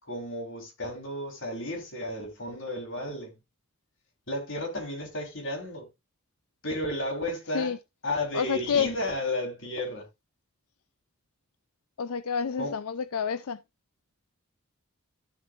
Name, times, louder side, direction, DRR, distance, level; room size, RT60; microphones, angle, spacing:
voice 1, 0.0-3.4 4.3-5.9 6.6-7.7 8.0-10.1 12.6-12.8, left 1 dB, 60° left, 3.6 m, -33 dB
voice 2, 8.3-8.9 12.0-13.6, left 6 dB, 85° left, 0.5 m, -28 dB
12.5 x 7.3 x 2.5 m
head